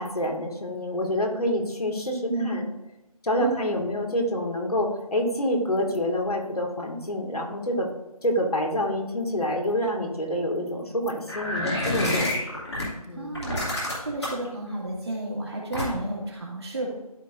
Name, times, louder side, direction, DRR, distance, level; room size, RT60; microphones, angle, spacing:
voice 1, 0.0-2.6 3.2-7.9 8.2-12.3 13.0-13.3, equal, 75° left, 1 dB, 2.2 m, -27 dB
voice 2, 2.3-2.6 3.4-3.8 13.1-13.7 14.0-16.9, right 2 dB, 40° right, -2 dB, 2.4 m, -31 dB
sound 1, 11.3-12.9 13.3-14.5 15.7-16.2, left 1 dB, 45° left, 2.7 m, -27 dB
13.5 x 4.7 x 2.7 m, 0.96 s
figure-of-eight pair, 175°, 20 cm